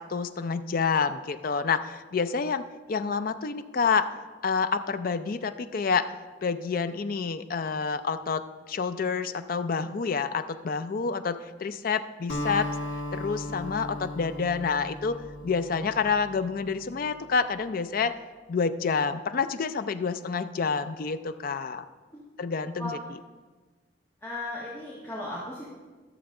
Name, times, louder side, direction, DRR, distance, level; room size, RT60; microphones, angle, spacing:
voice 1, 0.0-4.1 4.4-6.1 6.4-12.7 13.1-15.1 15.4-18.2 18.5-21.8 22.4-23.0, left 5 dB, 50° left, 10 dB, 0.4 m, -28 dB
Acoustic guitar, 12.3-16.8, left 1 dB, 90° left, 1.7 m, -36 dB
voice 2, 24.2-25.7, left 1 dB, 15° left, -7 dB, 1.4 m, -36 dB
12.5 x 6.9 x 3.7 m, 1.3 s
head